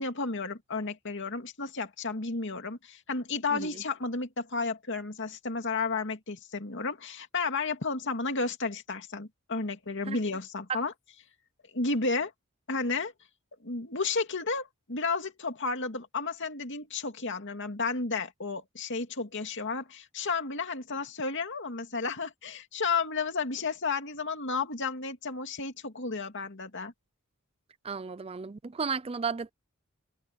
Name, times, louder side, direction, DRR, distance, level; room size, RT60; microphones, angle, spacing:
voice 1, 0.0-10.9 11.7-12.3 12.7-13.1 13.6-26.9, left 4 dB, 55° left, 2.5 m, -32 dB
voice 2, 27.8-29.5, right 5 dB, 25° right, 0.4 m, -33 dB
head